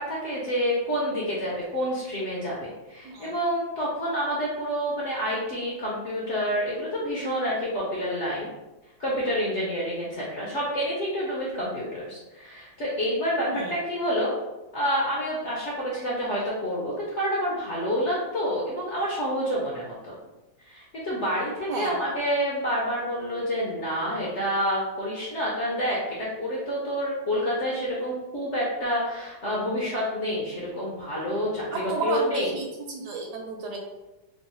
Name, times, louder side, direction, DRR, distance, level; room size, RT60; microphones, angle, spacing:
voice 1, 0.0-8.5 9.0-14.3 14.7-20.2 20.6-32.5, equal, 55° left, -6 dB, 0.8 m, -28 dB
voice 2, 31.7-33.8, right 3 dB, 75° right, 1 dB, 1.1 m, -32 dB
3.1 x 2.4 x 4.1 m, 1.1 s
omnidirectional pair, 2.0 m